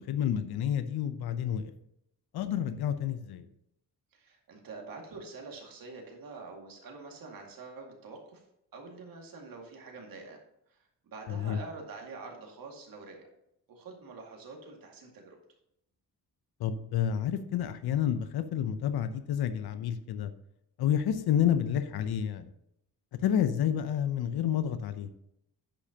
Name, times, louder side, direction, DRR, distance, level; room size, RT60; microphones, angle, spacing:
voice 1, 0.0-1.7 2.3-3.5 11.3-11.6 16.6-20.3 20.8-22.5 23.1-25.1, left 9 dB, 75° left, 11 dB, 0.7 m, -29 dB
voice 2, 4.1-8.4 8.7-10.4 10.7-13.3 13.7-15.4 23.2-23.4, right 3 dB, 60° right, 1 dB, 2.1 m, -46 dB
10.5 x 8.6 x 2.9 m, 0.79 s
wide cardioid pair, 175°, 38 cm